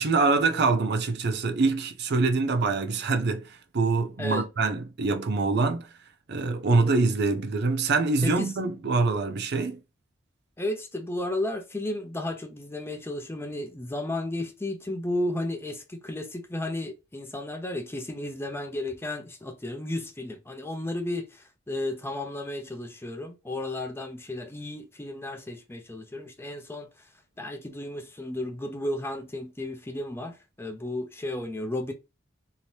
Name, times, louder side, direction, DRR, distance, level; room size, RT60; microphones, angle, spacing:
voice 1, 0.0-5.9 6.3-9.8, right 3 dB, 55° right, 0.5 m, -25 dB
voice 2, 10.6-26.9 27.4-31.9, left 1 dB, 10° left, 0.5 m, -33 dB
2.8 x 2.7 x 3.2 m
head